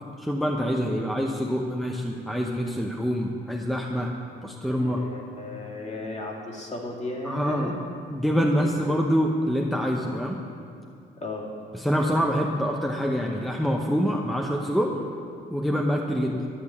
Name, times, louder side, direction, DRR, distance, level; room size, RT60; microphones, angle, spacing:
voice 1, 0.2-4.1 4.4-5.0 7.2-7.8 8.1-10.4 11.7-14.9 15.5-16.5, equal, ahead, 0 dB, 0.8 m, -26 dB
voice 2, 4.6-7.7 11.2-11.5 14.9-15.1, left 2 dB, 35° left, -2 dB, 2.3 m, -35 dB
12.5 x 6.5 x 7.3 m, 2.3 s
cardioid pair, 90°, 20 cm